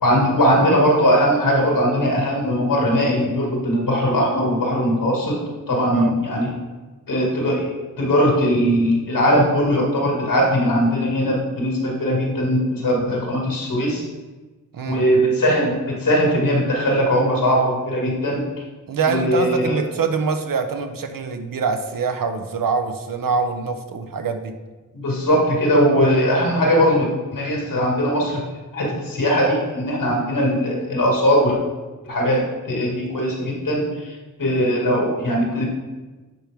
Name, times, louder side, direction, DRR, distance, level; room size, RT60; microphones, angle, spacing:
voice 1, 0.0-5.4 5.7-6.5 7.1-7.7 8.0-14.0 14.8-18.4 19.1-19.8 24.9-28.4 28.7-31.6 32.0-34.1 34.4-35.7, equal, 90° left, -2 dB, 2.1 m, -20 dB
voice 2, 14.7-15.0 18.9-24.5, right 5 dB, 85° right, 7 dB, 0.8 m, -24 dB
10.5 x 4.5 x 3.5 m, 1.3 s
wide cardioid pair, 80°, 33 cm